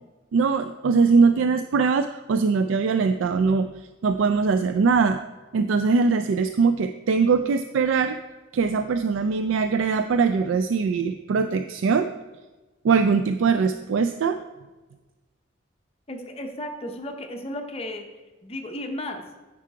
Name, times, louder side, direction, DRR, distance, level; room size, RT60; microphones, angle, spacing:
voice 1, 0.3-3.7 4.0-5.2 5.5-8.2 8.5-12.1 12.8-14.4, right 5 dB, 85° right, 9 dB, 0.3 m, -21 dB
voice 2, 16.1-18.0 18.4-19.2, left 1 dB, 30° left, 4 dB, 0.7 m, -34 dB
9.4 x 4.8 x 4.6 m, 1.2 s
head